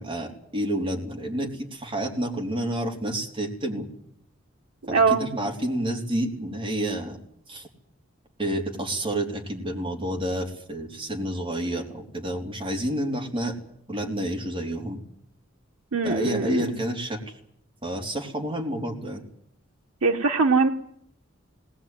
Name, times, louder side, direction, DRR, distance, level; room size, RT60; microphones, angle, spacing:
voice 1, 0.0-3.9 4.9-7.2 7.5-7.7 8.4-13.6 13.9-15.0 16.0-17.2 17.8-19.2, right 1 dB, 25° right, 1 dB, 3.7 m, -29 dB
voice 2, 4.9-5.2 15.9-16.7 20.0-20.7, right 4 dB, 85° right, 2 dB, 1.1 m, -21 dB
20.0 x 19.5 x 9.4 m, 0.71 s
head